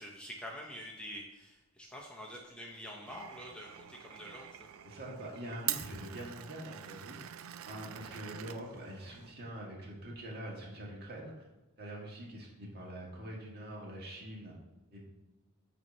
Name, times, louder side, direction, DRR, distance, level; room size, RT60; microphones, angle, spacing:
voice 1, 0.0-4.7, equal, 5° left, -2 dB, 0.7 m, -46 dB
Glass, 3.1-9.3, right 12 dB, 70° right, 0.4 m, -44 dB
voice 2, 4.8-7.2 7.6-11.4 11.8-14.5 14.9-15.0, right 1 dB, 45° right, -2 dB, 1.6 m, -44 dB
8.1 x 2.9 x 5.3 m, 1.1 s
head